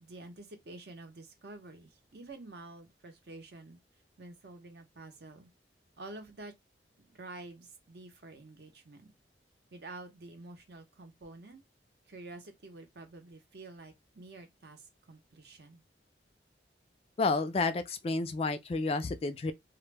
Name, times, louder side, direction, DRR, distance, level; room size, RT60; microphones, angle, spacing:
voice 1, 0.0-3.8 4.2-5.5 6.0-6.5 7.0-9.1 9.7-11.6 12.1-15.8, right 2 dB, 65° right, 0.7 m, -49 dB
voice 2, 17.2-19.5, left 3 dB, 35° left, 0.3 m, -30 dB
2.1 x 2.1 x 3.2 m
head